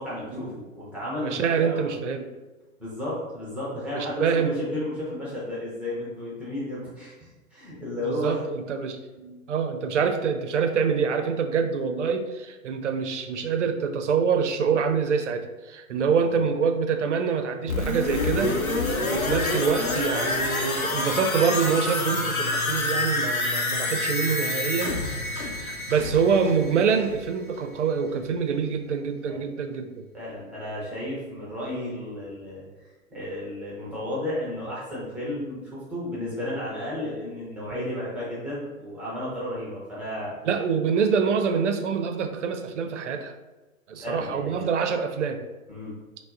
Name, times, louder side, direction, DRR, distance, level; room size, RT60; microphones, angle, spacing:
voice 1, 0.0-1.8 2.8-8.4 15.9-16.0 16.3-16.4 29.3-29.4 30.1-32.6 33.1-40.3 44.0-44.7 45.7-45.9, left 1 dB, 5° right, -7 dB, 0.6 m, -33 dB
voice 2, 1.2-2.3 3.9-4.7 8.0-18.5 19.0-25.0 25.6-30.1 37.7-37.9 40.4-43.3 43.9-45.4, right 6 dB, 60° right, 7 dB, 0.5 m, -25 dB
sound 1, 17.7-27.4 27.7-27.8, left 2 dB, 85° left, 0.7 m, -27 dB
5.7 x 2.0 x 2.6 m, 1.2 s
figure-of-eight pair, 110°, 41 cm